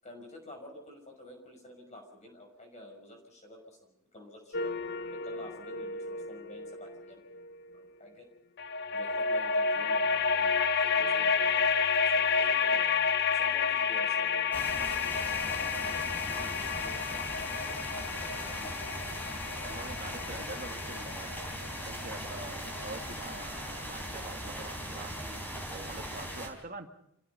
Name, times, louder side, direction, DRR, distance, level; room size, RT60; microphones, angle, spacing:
voice 1, 0.0-4.7 5.1-7.2 7.7-8.3 8.9-12.9 13.3-19.1, left 1 dB, 30° left, 2 dB, 6.0 m, -50 dB
sound 1, 4.5-7.8 8.6-23.5, left 5 dB, 50° left, 0.7 m, -31 dB
sound 2, 14.5-26.5, equal, 10° left, 4.2 m, -39 dB
voice 2, 19.6-21.3 21.8-26.9, right 2 dB, 40° right, 5 dB, 1.8 m, -45 dB
29.5 x 16.5 x 5.6 m, 0.75 s
head